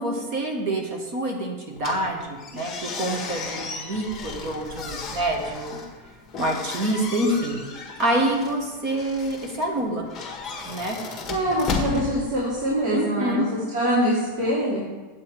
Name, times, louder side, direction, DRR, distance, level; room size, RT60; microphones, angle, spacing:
voice 1, 0.0-5.8 6.4-7.6 8.0-10.1 10.7-11.0 12.9-13.5, right 1 dB, 40° right, 1 dB, 1.4 m, -26 dB
sound 1, 1.8-12.9, left 4 dB, 15° left, 1.4 m, -35 dB
voice 2, 11.3-14.8, equal, 60° right, -7 dB, 3.0 m, -24 dB
8.3 x 7.2 x 4.7 m, 1.2 s
supercardioid pair, 155°, 0 cm